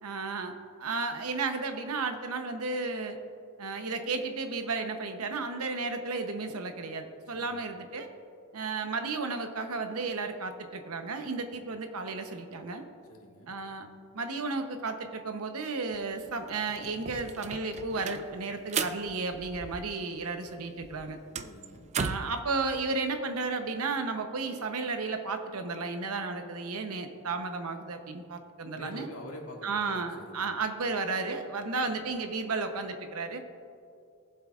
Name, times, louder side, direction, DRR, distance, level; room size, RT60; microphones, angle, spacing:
voice 1, 0.0-3.2 3.6-8.1 8.5-12.8 13.5-13.9 14.1-21.2 21.9-29.1 29.6-33.4, right 3 dB, 80° right, 6 dB, 0.9 m, -33 dB
voice 2, 13.1-13.5 21.4-21.9 28.7-30.5, left 1 dB, 75° left, 0 dB, 1.7 m, -46 dB
sound 1, 15.9-16.0 16.3-20.2 20.5-22.4, right 6 dB, 30° right, 0.3 m, -37 dB
18.5 x 7.7 x 2.5 m, 2.5 s
head